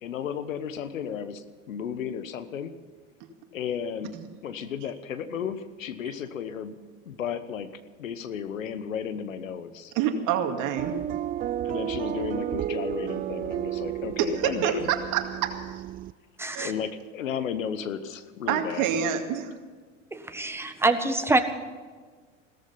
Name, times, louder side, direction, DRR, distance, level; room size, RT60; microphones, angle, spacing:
voice 1, 0.0-2.7 3.5-4.2 4.4-7.7 8.0-9.9 11.6-14.9 16.6-18.9, left 8 dB, 85° left, 12 dB, 1.2 m, -34 dB
voice 2, 10.0-10.9 14.2-14.3 14.6-14.7 15.1-15.8 16.5-16.7 18.5-19.5, right 9 dB, 50° right, 5 dB, 2.3 m, -27 dB
sound 1, 10.8-16.1, right 12 dB, 25° right, 0.4 m, -32 dB
voice 3, 16.4-16.7 20.1-21.4, right 2 dB, 5° right, 7 dB, 1.5 m, -25 dB
17.0 x 14.0 x 5.7 m, 1.5 s
hypercardioid pair, 90°, 39 cm